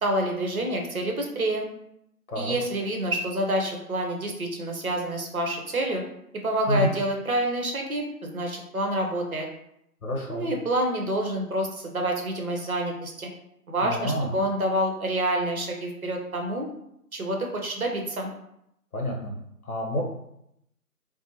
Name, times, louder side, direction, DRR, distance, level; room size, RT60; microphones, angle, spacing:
voice 1, 0.0-1.7 2.3-6.0 6.4-9.5 10.3-13.3 13.7-16.7 17.1-18.3, right 1 dB, 60° right, 2 dB, 0.7 m, -27 dB
voice 2, 10.0-10.5 13.8-14.3 18.9-19.3 19.6-20.0, equal, 60° left, 0 dB, 0.9 m, -28 dB
2.8 x 2.1 x 2.8 m, 0.78 s
figure-of-eight pair, 170°, 47 cm